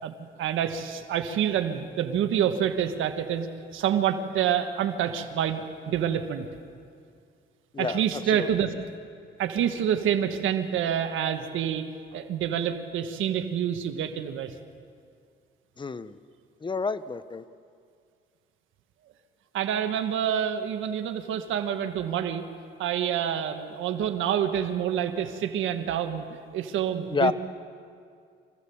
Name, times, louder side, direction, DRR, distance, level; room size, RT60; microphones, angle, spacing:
voice 1, 0.0-3.5 3.7-6.5 7.8-8.7 9.4-14.5 19.5-22.4 22.8-26.2 26.5-27.3, right 9 dB, 85° right, 8 dB, 1.4 m, -27 dB
voice 2, 15.8-16.1 16.6-17.4 27.1-27.3, left 4 dB, 25° left, 14 dB, 0.8 m, -28 dB
25.0 x 15.0 x 7.1 m, 2.2 s
cardioid pair, 90°, 20 cm